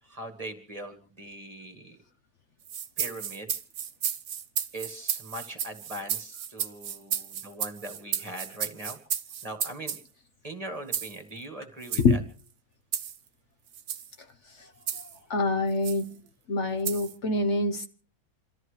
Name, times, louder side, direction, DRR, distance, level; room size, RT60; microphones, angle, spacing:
voice 1, 0.0-2.0 3.0-3.5 4.7-9.0 9.4-10.0 10.4-12.2, right 1 dB, 25° right, 1.8 m, -40 dB
sound 1, 2.6-10.0 10.9-11.2 11.8-12.1 12.9-13.2 13.7-14.1 14.9-15.2 15.8-16.0 16.8-17.1, right 9 dB, 70° right, 1.3 m, -33 dB
voice 2, 15.3-16.2 16.5-17.9, left 3 dB, 55° left, 1.2 m, -25 dB
28.0 x 13.5 x 3.2 m
omnidirectional pair, 1.5 m